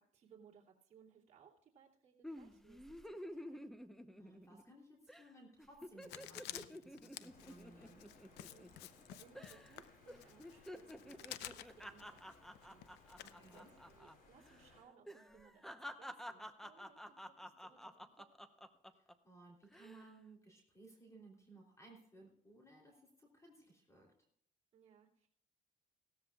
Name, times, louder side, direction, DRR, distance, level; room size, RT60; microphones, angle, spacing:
voice 1, 0.1-3.6 8.4-18.5 24.7-25.3, right 7 dB, 45° right, -3 dB, 2.9 m, -65 dB
sound 1, 2.2-4.8 5.1-5.3 5.6-9.0 9.3-9.8 10.1-14.1 14.4-14.6 15.0-19.1 19.6-20.0, equal, ahead, 0.8 m, -51 dB
voice 2, 4.2-8.0 13.2-13.7 18.9-24.1, right 2 dB, 15° left, -1 dB, 3.2 m, -60 dB
Writing, 6.0-14.0, left 13 dB, 90° left, 0.7 m, -52 dB
sound 2, 7.2-14.8, left 3 dB, 60° left, 5.7 m, -65 dB
17.5 x 13.5 x 2.4 m, 0.67 s
cardioid pair, 110°, 17 cm